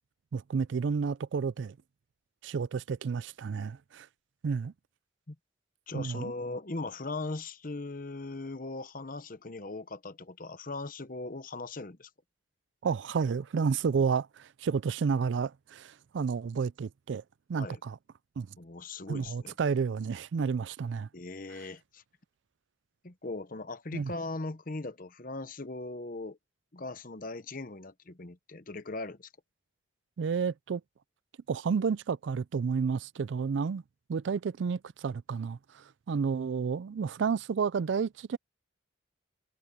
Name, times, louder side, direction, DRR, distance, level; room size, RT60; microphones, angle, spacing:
voice 1, 0.3-1.8 2.4-4.1 4.4-4.7 5.9-6.3 12.8-17.2 17.5-18.0 18.4-18.5 19.1-21.1 23.9-24.1 30.2-30.8 31.5-33.8 34.1-38.4, right 5 dB, 70° right, 0.4 m, -31 dB
voice 2, 5.9-12.1 17.6-17.8 18.6-19.5 21.1-22.0 23.0-26.4 26.7-29.3, left 2 dB, 45° left, 1.0 m, -39 dB
head